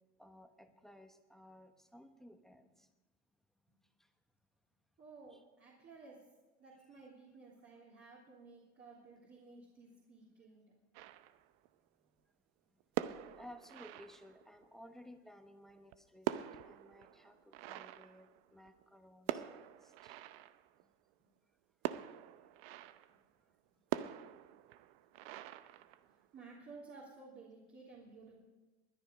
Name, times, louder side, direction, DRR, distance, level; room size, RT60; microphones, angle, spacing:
voice 1, 0.2-2.9 4.0-4.1 5.3-5.4 13.3-20.2, left 1 dB, ahead, 7 dB, 1.1 m, -57 dB
voice 2, 5.0-6.2 6.6-10.6 21.2-21.3 26.0-28.3, right 4 dB, 40° right, -5 dB, 3.3 m, -55 dB
sound 1, 10.9-11.7 12.8-14.7 15.7-18.8 19.3-20.8 21.8-23.2 23.9-26.4, right 13 dB, 75° right, 0.8 m, -44 dB
20.0 x 10.5 x 5.2 m, 1.2 s
supercardioid pair, 115°, 32 cm